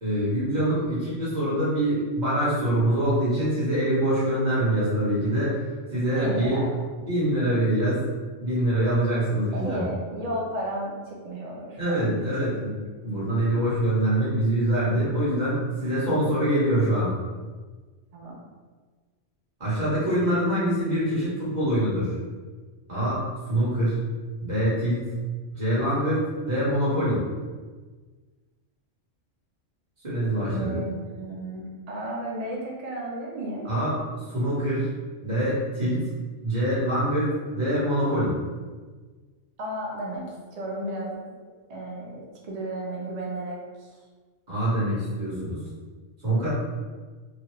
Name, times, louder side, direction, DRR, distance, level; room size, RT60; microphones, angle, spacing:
voice 1, 0.0-5.5 5.9-6.6 6.9-8.0 8.4-9.8 11.8-12.7 13.0-17.1 19.6-22.1 22.9-23.2 23.5-24.0 24.4-25.1 25.5-27.2 30.0-30.8 33.6-33.9 34.3-34.9 35.2-36.0 36.4-38.3 44.5-45.6 46.2-46.5, right 1 dB, 35° right, -9 dB, 1.3 m, -24 dB
voice 2, 6.1-6.7 9.5-12.1 12.4-12.5 18.1-18.4 30.5-33.7 39.6-41.2 41.7-43.9, right 1 dB, 75° right, -3 dB, 0.3 m, -33 dB
3.0 x 2.3 x 3.0 m, 1.4 s
omnidirectional pair, 1.4 m